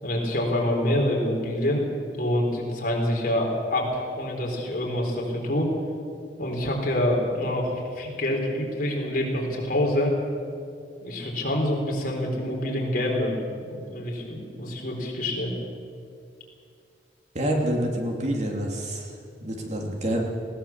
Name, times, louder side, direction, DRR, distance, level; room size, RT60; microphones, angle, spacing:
voice 1, 0.0-1.9 2.2-5.7 6.4-10.1 11.0-13.4 13.7-15.5, left 1 dB, 50° left, 0 dB, 4.2 m, -26 dB
voice 2, 17.3-19.1 19.4-20.2, right 1 dB, 40° right, 0 dB, 2.8 m, -27 dB
20.0 x 17.5 x 7.4 m, 2.3 s
head